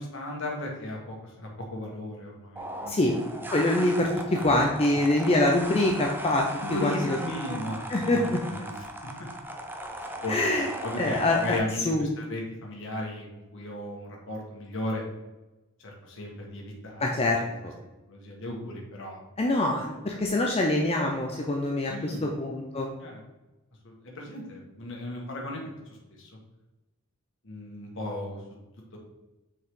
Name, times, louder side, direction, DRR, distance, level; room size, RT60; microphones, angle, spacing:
voice 1, 0.0-3.0 6.6-9.1 10.0-10.4 10.8-15.0 15.8-17.1 17.4-17.6 18.1-19.2 21.9-22.2 23.0-23.2 23.8-25.6 26.2-26.3 27.4-28.4 28.9-29.0, left 1 dB, 65° left, -1 dB, 1.6 m, -36 dB
sound 1, 2.6-11.6, right 1 dB, 10° right, 0.6 m, -38 dB
voice 2, 2.9-3.2 3.5-7.2 7.9-8.4 10.3-10.7 11.0-11.6 11.9-12.1 17.0-17.7 19.4-22.9, left 1 dB, 30° left, 1 dB, 0.6 m, -25 dB
6.2 x 4.7 x 3.7 m, 1.0 s
head